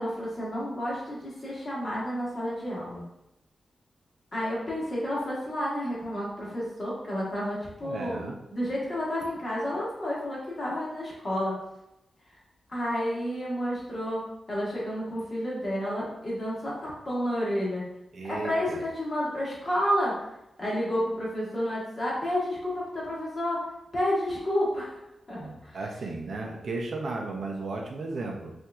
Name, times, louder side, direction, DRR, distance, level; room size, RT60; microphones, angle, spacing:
voice 1, 0.0-3.0 4.3-11.5 12.7-17.8 18.2-20.2 20.6-23.6 23.9-24.9 25.3-25.8, equal, 30° left, -6 dB, 1.4 m, -30 dB
voice 2, 7.8-8.3 18.1-18.8 25.4-28.5, right 3 dB, 55° right, 1 dB, 0.5 m, -35 dB
5.6 x 2.6 x 2.3 m, 0.87 s
wide cardioid pair, 150°, 0 cm